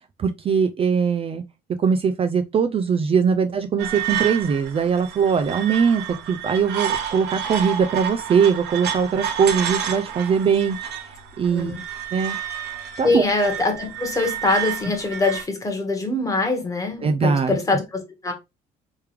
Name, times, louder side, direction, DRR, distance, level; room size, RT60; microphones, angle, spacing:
voice 1, 0.2-1.4 1.8-6.0 6.3-10.8 11.4-11.7 12.1-12.4 13.0-13.3 17.0-17.6, right 6 dB, 35° right, 0.4 m, -21 dB
sound 1, 3.8-15.4, right 9 dB, 90° right, 0.9 m, -30 dB
voice 2, 13.0-18.3, left 3 dB, 20° left, 1.3 m, -23 dB
3.3 x 3.1 x 3.3 m
cardioid pair, 110°, 17 cm